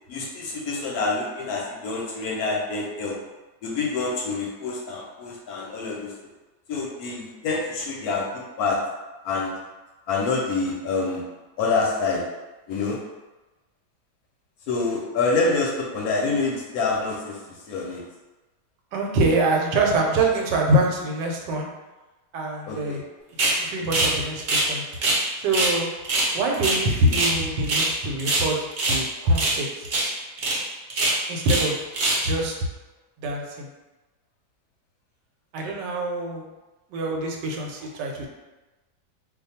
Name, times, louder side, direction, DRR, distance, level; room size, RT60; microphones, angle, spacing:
voice 1, 0.1-3.2 3.6-6.1 6.7-8.8 9.2-9.5 10.1-11.2 11.6-12.2 12.7-13.0 14.7-18.0 22.7-23.0, left 3 dB, 70° left, -2 dB, 0.9 m, -26 dB
voice 2, 18.9-21.7 22.3-23.0 23.5-24.8 25.4-25.9 26.3-29.9 31.3-31.9 32.2-32.5 33.2-33.7 35.5-36.5 36.9-38.3, right 1 dB, 85° right, 1 dB, 1.2 m, -24 dB
sound 1, 23.4-23.6 23.9-24.1 24.4-25.2 25.5-25.7 26.0-27.4 27.6-27.9 28.2-29.0 29.3-29.6 29.8-30.1 30.4-30.6 30.9-31.7 31.9-32.3, right 2 dB, 50° right, 0.8 m, -23 dB
2.6 x 2.4 x 4.1 m, 1.1 s
omnidirectional pair, 1.9 m